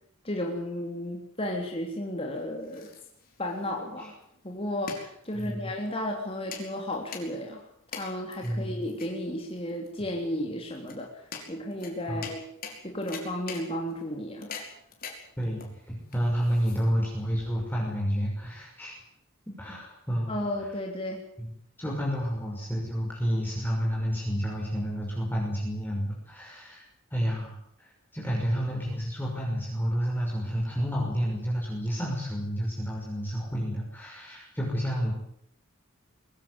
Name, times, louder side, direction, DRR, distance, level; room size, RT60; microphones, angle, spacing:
voice 1, 0.2-2.9 3.4-4.2 4.4-7.6 7.9-11.1 11.5-12.4 12.8-14.5 20.3-21.2, left 1 dB, 25° left, 0 dB, 3.4 m, -33 dB
sound 1, 2.3-17.2, left 5 dB, 45° left, 5.3 m, -45 dB
voice 2, 5.3-5.7 8.4-8.9 12.1-12.3 15.4-18.9 19.6-20.4 21.4-21.5 21.8-26.8 27.1-27.9 28.1-35.1, equal, 10° left, -3 dB, 5.9 m, -30 dB
22.5 x 16.5 x 9.7 m, 0.69 s
head